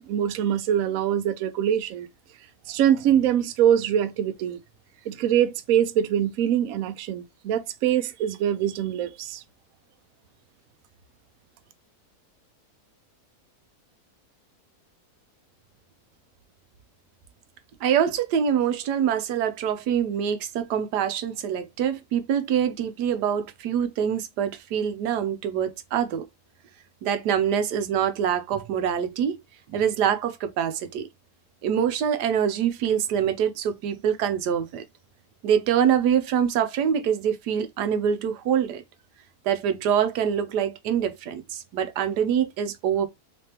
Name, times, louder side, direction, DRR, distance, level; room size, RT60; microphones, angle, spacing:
voice 1, 0.1-2.1 2.7-4.6 5.1-9.4, right 10 dB, 70° right, 0.9 m, -23 dB
voice 2, 17.8-26.3 27.0-29.4 29.7-31.1 31.6-34.8 35.4-38.8 39.4-43.1, right 8 dB, 85° right, 1.2 m, -25 dB
3.4 x 3.3 x 2.8 m
omnidirectional pair, 1.7 m